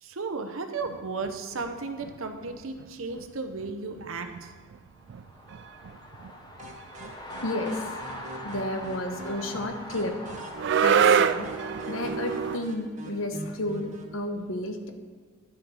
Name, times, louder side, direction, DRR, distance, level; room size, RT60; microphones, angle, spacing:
voice 1, 0.0-4.5, right 4 dB, 80° right, 7 dB, 0.9 m, -34 dB
sound 1, 0.8-1.7 2.0-2.9 3.1-3.3 3.6-3.7 4.0-12.6, right 7 dB, 60° right, 0.3 m, -28 dB
sound 2, 5.0-12.6, left 1 dB, 20° left, 0.8 m, -42 dB
sound 3, 6.6-14.2, right 2 dB, 35° right, 1.1 m, -45 dB
voice 2, 7.4-8.0 8.4-10.2 10.8-11.5 11.9-14.9, left 1 dB, 70° left, 6 dB, 1.0 m, -32 dB
11.0 x 6.3 x 4.8 m, 1.5 s
head